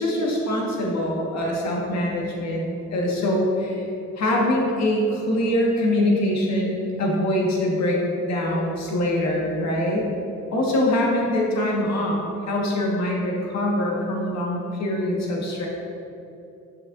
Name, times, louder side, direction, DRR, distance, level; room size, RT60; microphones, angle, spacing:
voice 1, 0.0-3.8 4.2-10.0 10.5-12.2 12.5-15.7, left 1 dB, 60° left, -2 dB, 1.6 m, -23 dB
9.2 x 6.5 x 2.6 m, 2.8 s
cardioid pair, 90°, 30 cm